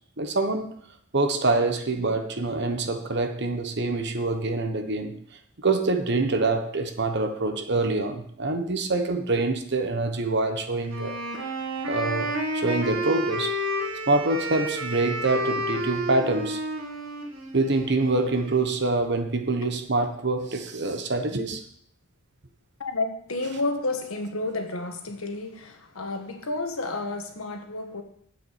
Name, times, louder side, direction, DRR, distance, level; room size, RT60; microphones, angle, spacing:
voice 1, 0.2-0.7 1.1-5.2 5.6-11.2 11.8-13.5 14.1-16.6 17.5-21.6, right 2 dB, 55° right, 1.2 m, -25 dB
Wind instrument woodwind instrument, 10.8-18.7, right 1 dB, 75° right, 2.0 m, -31 dB
voice 2, 22.8-28.0, left 2 dB, 85° left, 1.5 m, -31 dB
7.7 x 6.8 x 7.6 m
head